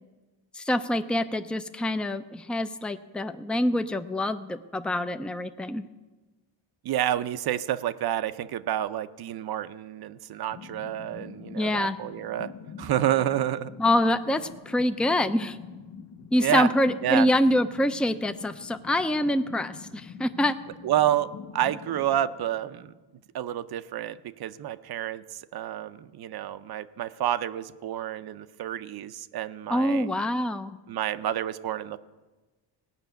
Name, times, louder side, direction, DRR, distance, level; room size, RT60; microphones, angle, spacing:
voice 1, 0.5-5.8 11.6-12.0 13.8-15.6 16.3-20.6 29.7-30.8, left 1 dB, ahead, 10 dB, 0.5 m, -25 dB
voice 2, 6.8-12.5 12.8-13.7 16.4-16.7 17.0-17.3 20.8-22.9 23.3-30.1 30.9-32.0, right 11 dB, 55° right, 13 dB, 0.7 m, -29 dB
sound 1, 10.5-23.2, left 6 dB, 80° left, 1.4 m, -46 dB
17.5 x 6.1 x 9.1 m, 1.2 s
cardioid pair, 125°, 46 cm